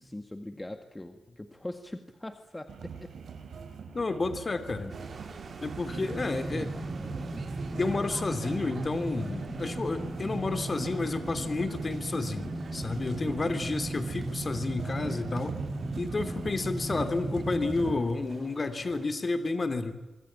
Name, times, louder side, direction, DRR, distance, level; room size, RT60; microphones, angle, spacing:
voice 1, 0.0-3.1 13.2-13.6, left 1 dB, 15° left, 6 dB, 1.9 m, -42 dB
sound 1, 2.7-18.0, right 6 dB, 85° right, 5.0 m, -43 dB
voice 2, 3.9-4.9 5.6-6.7 7.8-15.6 16.0-20.0, left 3 dB, 35° left, 9 dB, 3.0 m, -31 dB
sound 2, 4.9-19.1, right 4 dB, 55° right, 5.3 m, -48 dB
sound 3, 5.9-18.0, right 2 dB, 15° right, 7.5 m, -36 dB
25.5 x 25.5 x 8.9 m, 1.1 s
wide cardioid pair, 110°, 0 cm